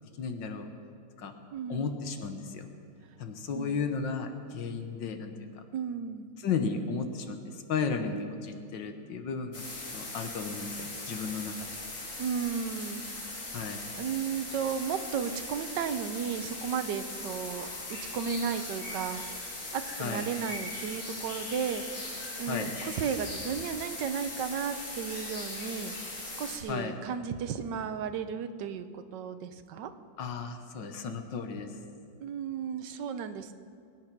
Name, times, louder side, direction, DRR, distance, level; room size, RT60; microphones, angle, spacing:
voice 1, 0.2-0.7 1.2-1.3 1.7-2.7 3.2-5.6 6.4-9.6 9.9-11.7 13.5-13.8 20.0-20.2 22.5-22.7 26.7-26.9 30.2-31.8, left 5 dB, 70° left, 7 dB, 1.7 m, -34 dB
voice 2, 1.5-1.9 3.5-3.8 5.7-6.3 12.2-13.3 13.9-19.2 19.7-26.0 26.4-29.9 32.2-33.5, right 7 dB, 70° right, 9 dB, 1.4 m, -34 dB
sound 1, 9.5-26.6, left 2 dB, 50° left, 2.9 m, -39 dB
22.5 x 9.4 x 6.0 m, 2.4 s
omnidirectional pair, 2.1 m